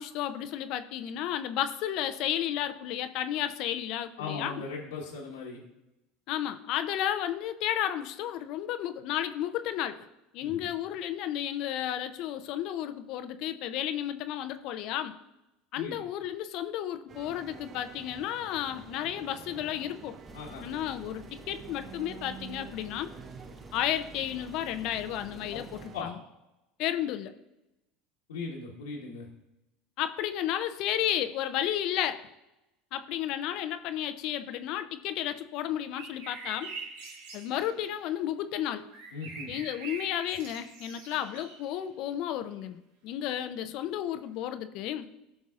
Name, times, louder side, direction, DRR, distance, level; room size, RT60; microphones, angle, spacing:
voice 1, 0.0-4.6 6.3-10.0 10.3-15.2 15.7-20.2 20.6-23.1 23.7-26.2 26.8-27.3 30.0-32.2 32.9-36.7 37.3-38.9 39.5-42.8 43.0-45.1, left 11 dB, 60° left, 10 dB, 0.6 m, -32 dB
voice 2, 4.2-5.6 10.4-10.6 15.8-16.0 20.3-20.7 25.5-25.6 25.9-26.1 28.3-29.3 39.1-39.5, left 4 dB, 85° left, -4 dB, 1.3 m, -38 dB
sound 1, 17.1-26.0, right 8 dB, 40° right, 0.5 m, -48 dB
Engine, 20.2-26.0, left 1 dB, 20° left, 1.1 m, -51 dB
sound 2, 35.9-37.9 38.9-41.8 42.6-42.7, right 3 dB, 80° right, 1.5 m, -44 dB
15.5 x 6.0 x 2.5 m, 0.95 s
hypercardioid pair, 85°, 0 cm